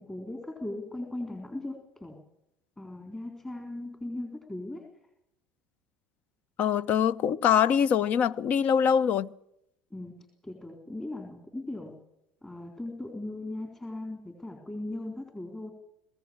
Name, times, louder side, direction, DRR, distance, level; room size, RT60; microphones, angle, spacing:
voice 1, 0.0-2.2 2.8-4.8 9.9-10.1 10.4-11.9 12.4-15.7, left 1 dB, 15° left, 4.0 m, -38 dB
voice 2, 6.6-9.3, left 8 dB, 50° left, 0.8 m, -24 dB
22.0 x 16.0 x 8.8 m
hypercardioid pair, 70°, 3 cm